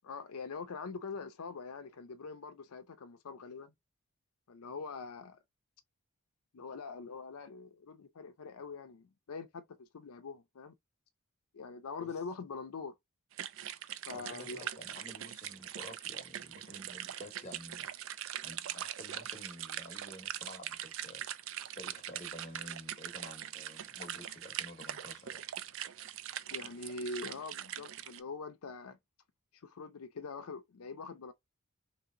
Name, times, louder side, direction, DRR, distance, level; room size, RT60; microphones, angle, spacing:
voice 1, 0.0-3.7 4.5-5.4 6.5-10.7 11.5-12.9 14.1-14.7 26.5-29.0 29.5-31.3, left 4 dB, 80° left, 0.5 m, -43 dB
sound 1, 13.3-28.2, right 11 dB, 60° right, 0.3 m, -42 dB
voice 2, 14.1-18.1 18.4-21.2 21.6-25.4, left 1 dB, 30° left, 0.9 m, -51 dB
3.2 x 2.8 x 3.7 m
head